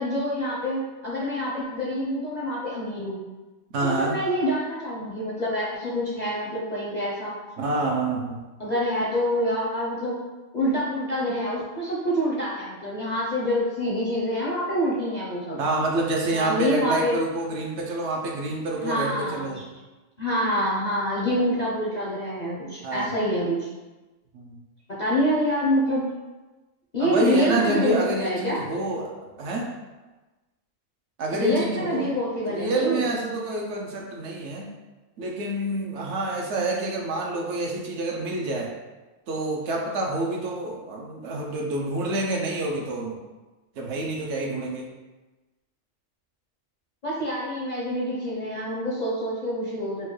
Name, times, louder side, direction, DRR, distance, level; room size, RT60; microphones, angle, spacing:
voice 1, 0.0-3.2 3.8-7.4 8.6-10.2 10.5-15.6 16.3-17.2 18.8-19.6 20.2-23.7 25.0-26.0 26.9-28.6 31.3-33.1 47.0-50.1, equal, 45° left, -6 dB, 0.6 m, -26 dB
voice 2, 3.7-4.2 7.6-8.4 15.6-19.6 22.8-23.1 24.3-24.6 27.0-29.7 31.2-34.7 35.2-38.7 39.3-43.2 43.8-44.9, right 2 dB, 70° right, 0 dB, 0.8 m, -28 dB
4.4 x 2.2 x 3.1 m, 1.2 s
omnidirectional pair, 1.4 m